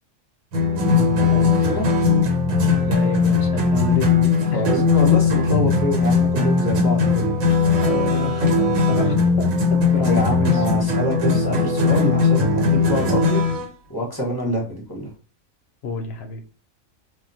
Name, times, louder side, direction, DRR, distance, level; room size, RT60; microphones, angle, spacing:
sound 1, 0.5-13.7, left 4 dB, 85° right, 1.2 m, -19 dB
voice 1, 0.7-1.9 4.5-7.6 10.0-13.4 13.9-15.1, equal, 20° left, 0.7 m, -26 dB
voice 2, 2.7-4.6 7.8-10.6 15.8-16.4, left 3 dB, 60° left, 0.7 m, -30 dB
2.4 x 2.2 x 3.9 m
omnidirectional pair, 1.4 m